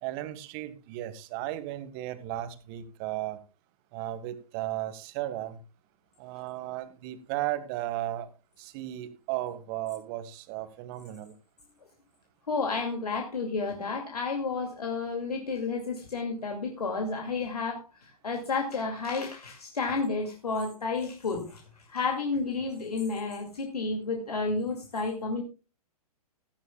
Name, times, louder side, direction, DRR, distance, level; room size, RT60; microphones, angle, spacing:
voice 1, 0.0-3.4 3.9-5.6 6.2-8.3 8.6-11.3, right 14 dB, 35° right, 11 dB, 1.7 m, -35 dB
voice 2, 12.5-21.6 21.9-25.4, left 4 dB, 75° left, 2 dB, 2.5 m, -31 dB
16.5 x 13.5 x 2.3 m, 0.30 s
figure-of-eight pair, 115°, 20 cm